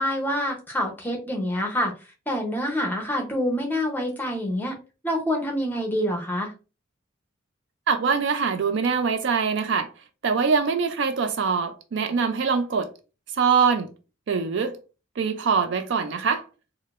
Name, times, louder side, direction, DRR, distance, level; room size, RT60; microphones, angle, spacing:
voice 1, 0.0-1.9 2.3-4.8 5.0-6.5, equal, 10° left, 0.7 m, -26 dB
voice 2, 7.9-9.9 10.2-12.9 13.4-13.9 14.3-14.8 15.2-16.4, right 5 dB, 60° right, 0.4 m, -23 dB
4.2 x 2.0 x 2.4 m
head